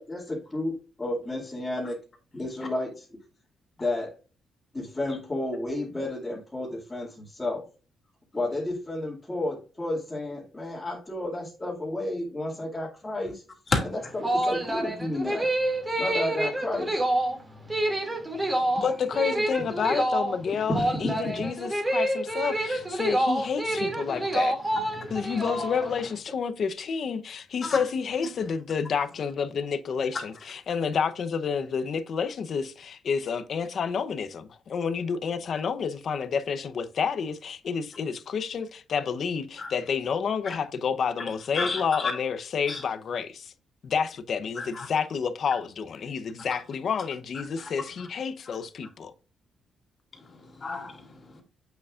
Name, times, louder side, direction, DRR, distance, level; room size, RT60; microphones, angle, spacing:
voice 1, 0.0-2.0 2.3-3.1 3.8-4.1 4.7-7.6 8.3-13.4 13.8-15.5 16.0-17.0 21.4-21.5, left 1 dB, 15° left, 2.3 m, -32 dB
sound 1, 14.0-26.1, right 1 dB, 15° right, 2.5 m, -27 dB
voice 2, 18.8-20.7 21.0-24.6 25.1-43.5 43.8-49.1, left 6 dB, 50° left, 0.8 m, -29 dB
voice 3, 41.5-42.1 42.7-42.8 44.6-44.9 47.6-47.7 48.0-48.1 50.1-51.4, left 3 dB, 30° left, 2.5 m, -32 dB
8.1 x 6.7 x 2.5 m
cardioid pair, 120°, 0 cm